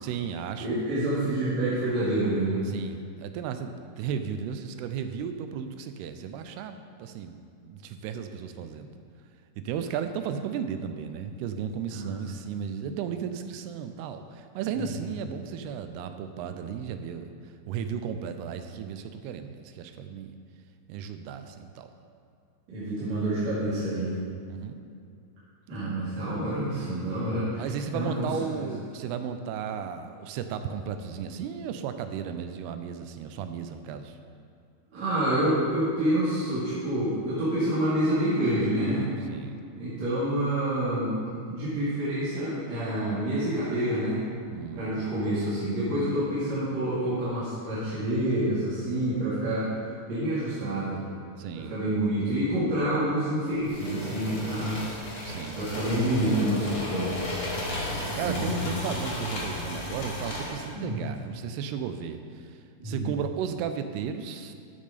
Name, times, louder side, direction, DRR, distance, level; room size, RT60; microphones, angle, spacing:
voice 1, 0.0-0.7 2.7-8.9 9.6-17.3 17.7-20.3 20.9-21.9 24.5-24.8 27.6-34.2 39.3-39.6 44.5-45.0 51.4-51.8 55.2-55.7 57.5-62.6 62.8-64.5, right 7 dB, 90° right, 8 dB, 2.7 m, -35 dB
voice 2, 0.6-2.6 11.9-12.1 22.7-24.2 25.7-27.6 27.9-28.7 34.9-39.1 39.7-44.2 44.7-49.7 50.1-51.0 51.6-54.8 55.6-57.2 58.1-58.5 60.7-61.0 62.8-63.1, right 1 dB, 50° right, -12 dB, 3.3 m, -27 dB
sound 1, 53.6-60.8, left 1 dB, 45° left, 2.1 m, -34 dB
12.5 x 5.5 x 5.1 m, 2.4 s
omnidirectional pair, 4.5 m